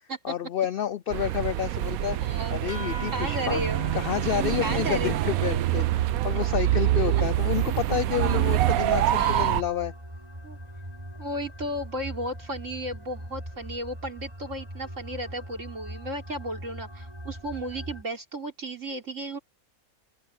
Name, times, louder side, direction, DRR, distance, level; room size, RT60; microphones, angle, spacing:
voice 1, 0.2-2.2 2.5-3.6 3.9-9.9, left 10 dB, 80° left, 0.5 m, -29 dB
sound 1, 1.1-9.6, right 14 dB, 85° right, 1.1 m, -26 dB
voice 2, 2.2-2.6 3.1-4.0 4.6-5.2 9.1-9.6 10.4-10.6 11.2-19.4, right 1 dB, 60° right, 4.1 m, -34 dB
sound 2, 2.7-7.6, right 1 dB, 10° left, 3.7 m, -45 dB
sound 3, 3.1-18.0, equal, 20° right, 5.2 m, -41 dB
open air
omnidirectional pair, 1.5 m